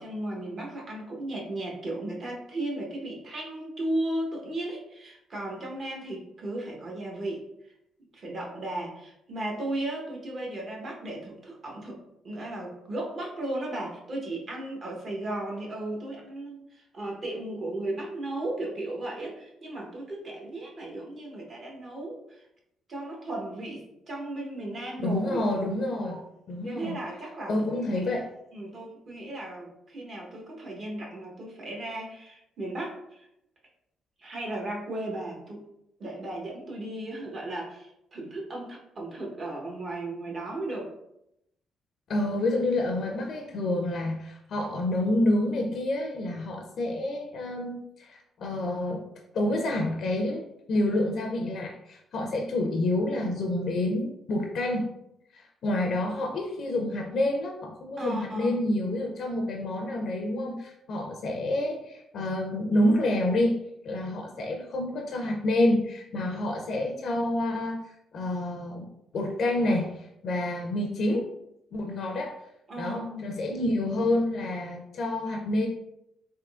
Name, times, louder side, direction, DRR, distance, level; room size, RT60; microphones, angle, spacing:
voice 1, 0.0-7.7 8.1-12.0 12.2-22.4 22.9-25.4 25.9-26.3 26.6-28.2 28.5-33.3 34.2-35.6 36.0-40.9 58.0-58.7 72.7-73.4, right 1 dB, 50° right, -1 dB, 0.9 m, -35 dB
voice 2, 25.0-26.2 26.5-27.0 27.5-28.3 42.1-49.0 49.3-50.4 50.7-54.9 55.3-68.9 69.1-71.3 71.7-72.3 72.8-75.7, left 1 dB, 60° left, 1 dB, 0.4 m, -28 dB
3.5 x 2.6 x 2.4 m, 0.81 s
cardioid pair, 90°, 0 cm